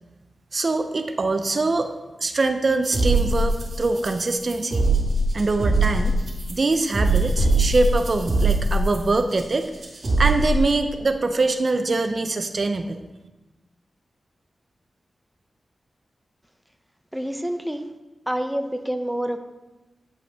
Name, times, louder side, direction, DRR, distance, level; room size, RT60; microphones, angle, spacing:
voice 1, 0.5-1.9 2.2-4.9 5.3-6.2 6.5-9.7 10.2-13.0, right 3 dB, 55° right, 8 dB, 0.5 m, -23 dB
sound 1, 2.8-10.6, right 2 dB, 70° right, 2.4 m, -22 dB
voice 2, 17.1-17.9 18.3-19.4, equal, 5° right, 7 dB, 0.6 m, -27 dB
9.6 x 5.2 x 3.4 m, 1.1 s
cardioid pair, 55°, 0 cm